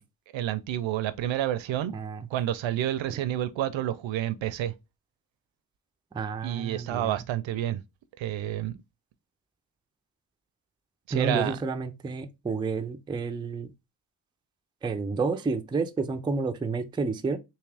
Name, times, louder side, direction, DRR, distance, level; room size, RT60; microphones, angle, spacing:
voice 1, 0.3-1.9 2.3-4.7 6.4-7.8 8.2-8.7 11.1-11.6, right 12 dB, 75° right, 0.6 m, -29 dB
voice 2, 1.9-2.3 6.1-7.2 11.1-13.7 14.8-17.4, right 4 dB, 10° right, 0.3 m, -30 dB
3.5 x 2.8 x 3.3 m
cardioid pair, 90°, 46 cm